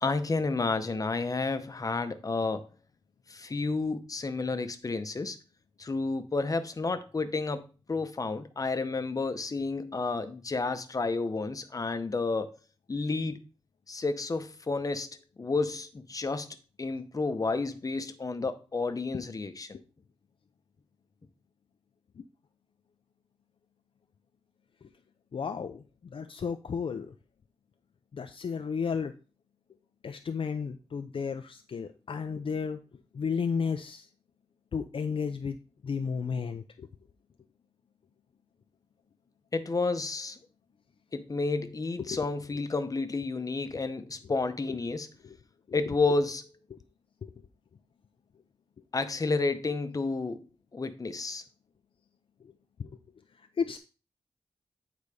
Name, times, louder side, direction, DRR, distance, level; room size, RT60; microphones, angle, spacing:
voice 1, 0.0-2.7 3.3-5.4 5.8-12.5 12.9-13.4 13.9-15.1 15.4-16.5 16.8-19.7 39.5-40.4 41.1-45.1 45.7-46.4 48.9-50.4 50.7-51.4, left 3 dB, 35° left, 0.8 m, -31 dB
voice 2, 25.3-25.8 26.1-27.1 28.1-29.1 30.0-32.8 33.1-34.1 34.7-35.6 35.8-36.9 42.0-42.6 44.2-44.4 44.6-45.0 45.2-45.4 45.7-46.2 47.2-47.3 52.8-53.0 53.6-53.8, left 6 dB, 60° left, 0.5 m, -33 dB
8.7 x 4.0 x 4.9 m
wide cardioid pair, 125°, 10 cm